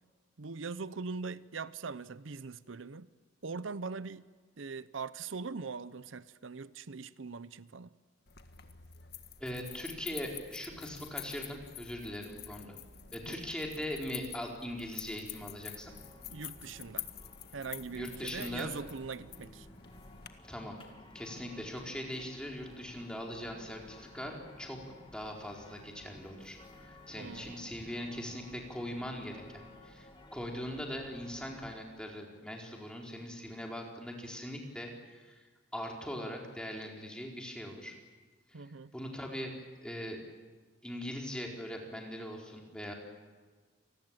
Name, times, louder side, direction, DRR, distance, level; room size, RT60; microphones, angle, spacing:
voice 1, 0.4-3.1 3.4-4.3 4.6-7.9 13.3-13.4 16.3-17.1 17.5-19.7 27.2-27.8 38.5-38.9, right 4 dB, 85° right, 16 dB, 0.8 m, -41 dB
sound 1, 8.3-20.3, left 10 dB, 55° left, 1.7 m, -47 dB
voice 2, 9.4-12.8 13.1-15.9 18.0-18.7 20.4-20.8 21.1-24.8 25.1-26.6 26.8-38.0 38.5-39.5 39.8-40.2 40.8-42.9, equal, 5° left, 0 dB, 4.4 m, -41 dB
sound 2, 15.8-31.8, left 1 dB, 25° left, 3.0 m, -55 dB
28.5 x 20.0 x 9.0 m, 1.4 s
head